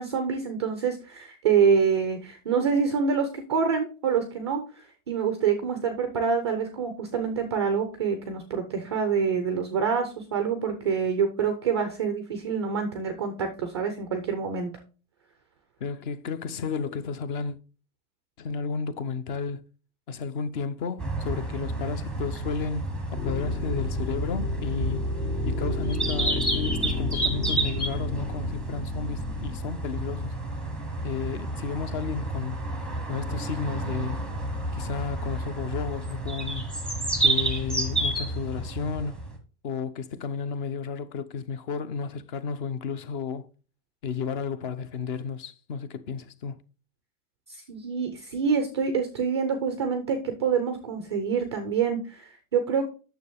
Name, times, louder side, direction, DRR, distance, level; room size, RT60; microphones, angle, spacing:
voice 1, 0.0-14.7 47.5-52.8, right 6 dB, 20° right, 0.3 m, -26 dB
voice 2, 15.8-17.6 18.4-19.7 20.1-25.1 25.5-30.4 31.0-32.6 33.1-34.2 34.7-36.6 37.2-39.2 39.6-43.5 44.0-46.6, left 5 dB, 35° left, 0.7 m, -32 dB
sound 1, 21.0-39.4, right 2 dB, ahead, 0.9 m, -31 dB
sound 2, 23.2-29.6, left 2 dB, 70° left, 2.9 m, -31 dB
9.2 x 6.8 x 3.5 m
supercardioid pair, 175°, 43 cm